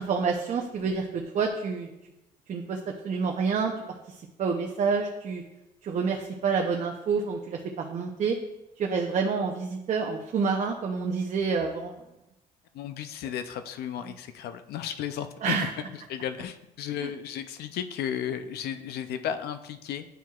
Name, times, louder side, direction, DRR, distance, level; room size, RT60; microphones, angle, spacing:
voice 1, 0.0-1.9 2.5-2.8 3.0-3.7 4.1-5.4 5.8-8.4 8.8-12.0 15.4-15.7 17.0-17.1, right 5 dB, 45° right, 2 dB, 0.6 m, -28 dB
voice 2, 12.7-15.6 15.9-20.1, left 9 dB, 70° left, 10 dB, 0.4 m, -34 dB
8.9 x 4.5 x 2.3 m, 0.93 s
cardioid pair, 100°, 17 cm